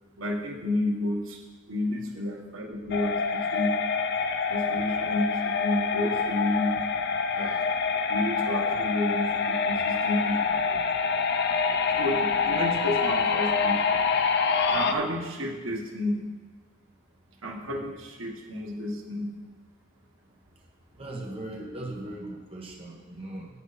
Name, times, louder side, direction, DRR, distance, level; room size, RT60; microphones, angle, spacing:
voice 1, 0.2-1.4 1.7-3.7 4.5-6.9 7.3-7.7 8.1-10.5 11.9-13.8 14.7-16.3 17.4-19.4, left 1 dB, 80° right, 0 dB, 1.5 m, -31 dB
sound 1, 2.9-14.9, left 5 dB, 55° left, 0.6 m, -26 dB
voice 2, 21.0-23.5, right 1 dB, 30° right, -2 dB, 1.5 m, -38 dB
11.0 x 8.4 x 4.2 m, 1.3 s
head